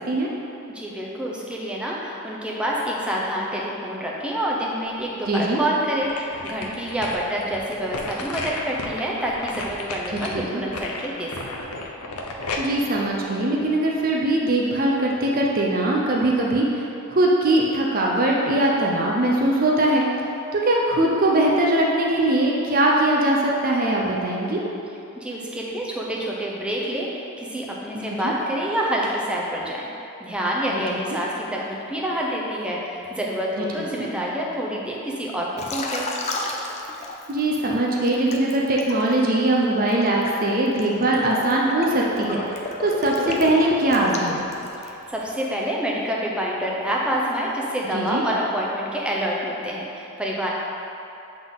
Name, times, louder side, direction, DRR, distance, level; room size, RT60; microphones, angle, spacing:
voice 1, 0.7-11.4 25.2-29.9 30.2-36.1 44.8-50.5, equal, 5° right, -4 dB, 0.7 m, -27 dB
sound 1, 4.8-5.6 6.0-14.1 14.5-14.6, left 2 dB, 90° left, 0.7 m, -33 dB
voice 2, 5.3-5.6 10.3-10.6 12.6-16.8 17.1-20.0 20.5-24.6 27.9-28.3 30.7-31.0 33.6-33.7 34.0-34.1 37.3-42.4 42.8-44.5 47.9-48.2, right 1 dB, 40° right, -2 dB, 0.6 m, -21 dB
Liquid, 35.6-37.6 38.0-45.0, left 2 dB, 30° left, 0.5 m, -33 dB
7.8 x 3.9 x 3.7 m, 2.8 s
head